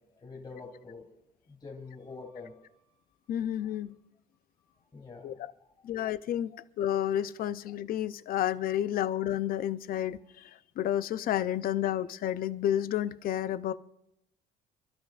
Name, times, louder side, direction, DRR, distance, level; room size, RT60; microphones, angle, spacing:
voice 1, 0.1-1.1 1.5-3.8 4.6-5.9 8.8-8.9, left 4 dB, 25° left, -1 dB, 3.3 m, -48 dB
voice 2, 3.3-3.9 5.2-5.3 5.8-10.5 10.8-13.7, left 11 dB, 60° left, 14 dB, 0.6 m, -30 dB
29.0 x 12.5 x 2.4 m, 0.82 s
cardioid pair, 110°, 17 cm